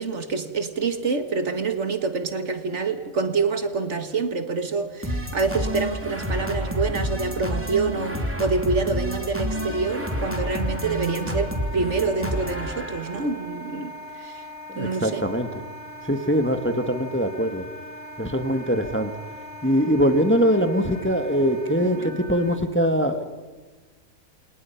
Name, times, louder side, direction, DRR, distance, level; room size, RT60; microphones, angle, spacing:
voice 1, 0.0-14.4 14.8-15.3 21.8-22.1, right 4 dB, 55° right, 1.9 m, -27 dB
sound 1, 5.0-13.2, equal, 10° right, 2.9 m, -29 dB
Wind instrument woodwind instrument, 9.5-22.6, left 1 dB, 75° left, 2.8 m, -40 dB
voice 2, 14.7-15.5 16.0-17.6 18.2-19.1 19.6-23.2, equal, 10° left, 1.3 m, -22 dB
29.0 x 28.0 x 5.8 m
omnidirectional pair, 1.5 m